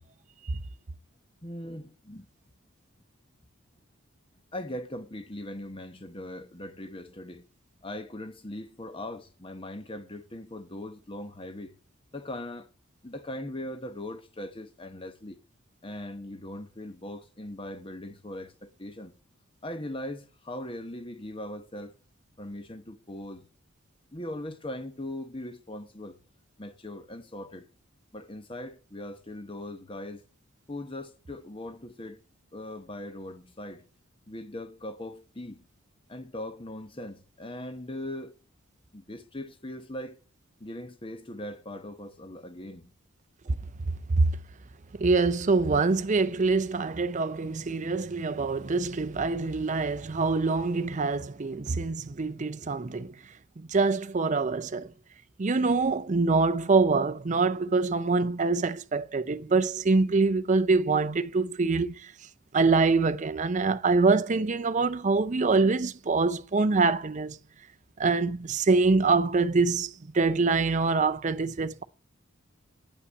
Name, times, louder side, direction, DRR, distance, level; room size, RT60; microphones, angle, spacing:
voice 1, 1.4-2.3 4.5-7.5 7.8-11.8 12.1-12.7 13.0-15.4 15.8-19.2 19.6-22.0 22.4-23.5 24.1-26.2 26.6-27.7 28.1-30.2 30.7-32.2 32.5-33.9 34.3-35.6 36.1-38.4 38.9-40.2 40.6-42.9, left 1 dB, 25° left, 1.1 m, -40 dB
voice 2, 45.0-53.1 53.6-54.9 55.4-61.9 62.5-67.4 68.0-71.8, right 3 dB, 35° right, 0.5 m, -25 dB
9.8 x 5.7 x 8.1 m
head